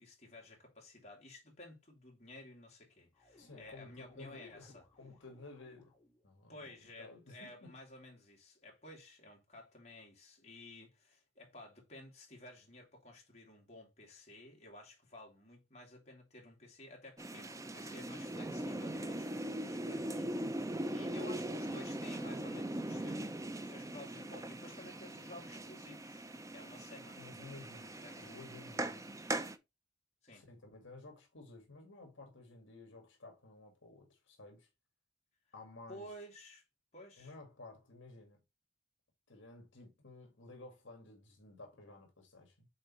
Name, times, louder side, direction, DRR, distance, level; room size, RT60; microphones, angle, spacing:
voice 1, 0.0-4.8 6.5-27.2 28.0-28.3 30.2-30.4 35.9-36.6 36.9-37.3, left 1 dB, 35° left, 2.6 m, -54 dB
sound 1, 3.1-6.3, left 1 dB, 10° left, 3.0 m, -66 dB
voice 2, 3.4-5.9 6.2-7.7 27.2-29.1 30.3-34.7 35.5-36.1 37.2-38.4 39.3-42.7, left 2 dB, 65° left, 1.9 m, -54 dB
sound 2, 17.2-29.6, right 1 dB, 15° right, 0.5 m, -40 dB
6.5 x 4.0 x 4.1 m
head